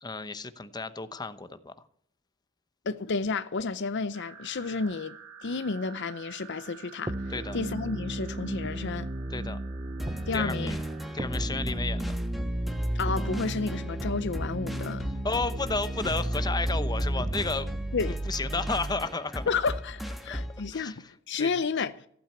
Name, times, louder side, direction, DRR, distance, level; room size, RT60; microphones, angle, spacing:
voice 1, 0.0-1.7 7.3-7.6 9.3-9.6 10.3-10.8 11.1-12.2 15.2-17.7 18.1-19.5 20.3-20.4 20.7-21.0 21.4-21.5, left 3 dB, 20° left, 0.9 m, -32 dB
voice 2, 2.9-5.2 5.4-9.1 10.3-10.8 12.9-15.0 17.9-18.2 19.5-22.1, left 4 dB, 60° left, 0.6 m, -31 dB
sound 1, 4.1-11.2, right 8 dB, 80° right, 2.6 m, -50 dB
sound 2, 7.1-19.1, right 1 dB, 20° right, 0.6 m, -33 dB
sound 3, 10.0-20.7, equal, ahead, 1.3 m, -38 dB
15.5 x 8.8 x 8.3 m
head